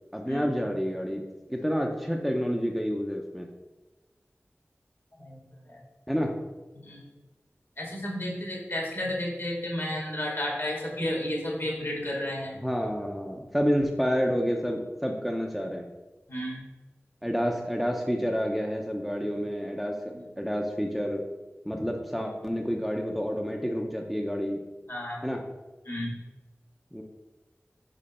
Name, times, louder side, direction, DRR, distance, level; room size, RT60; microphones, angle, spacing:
voice 1, 0.1-1.2 1.5-3.5 6.1-6.3 12.6-15.9 17.2-21.2 21.7-24.6 25.2-25.4 26.9-27.0, equal, ahead, 1 dB, 0.6 m, -29 dB
voice 2, 6.7-7.1 7.8-12.5 16.3-16.7 20.1-20.2 24.9-25.2 25.8-26.2, left 1 dB, 60° left, -2 dB, 2.1 m, -32 dB
5.3 x 4.8 x 4.2 m, 1.1 s
wide cardioid pair, 50°, 5 cm